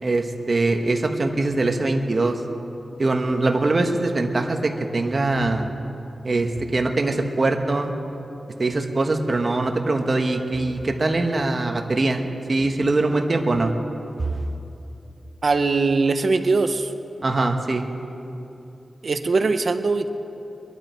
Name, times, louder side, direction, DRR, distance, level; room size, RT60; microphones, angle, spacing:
voice 1, 0.0-2.4 3.0-5.7 6.2-7.9 8.6-13.7 17.2-17.8, right 2 dB, 45° right, 4 dB, 1.2 m, -22 dB
voice 2, 15.4-16.9 19.0-20.1, right 3 dB, 60° right, 8 dB, 0.8 m, -21 dB
23.0 x 11.0 x 4.5 m, 2.8 s
wide cardioid pair, 75°, 0 cm